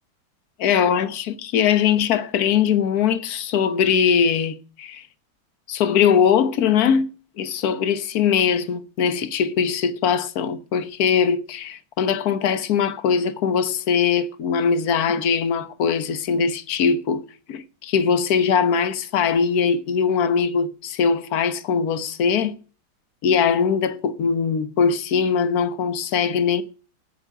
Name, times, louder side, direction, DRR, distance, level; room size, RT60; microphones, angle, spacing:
voice 1, 0.6-5.0 5.7-7.1 7.4-17.2 17.5-22.6 23.2-26.6, left 7 dB, 55° left, 1.3 m, -21 dB
9.3 x 9.1 x 9.0 m
omnidirectional pair, 2.3 m